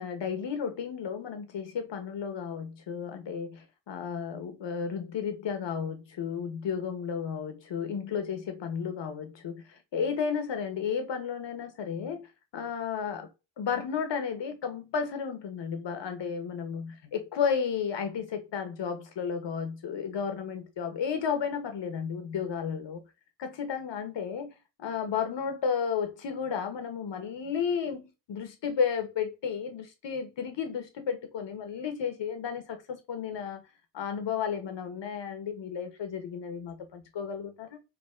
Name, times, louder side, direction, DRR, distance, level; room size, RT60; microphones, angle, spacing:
voice 1, 0.0-12.3 12.5-13.3 13.6-23.0 23.4-24.5 24.8-33.6 33.9-37.8, left 6 dB, 90° left, 1.1 m, -33 dB
4.0 x 2.8 x 4.3 m
cardioid pair, 90°, 42 cm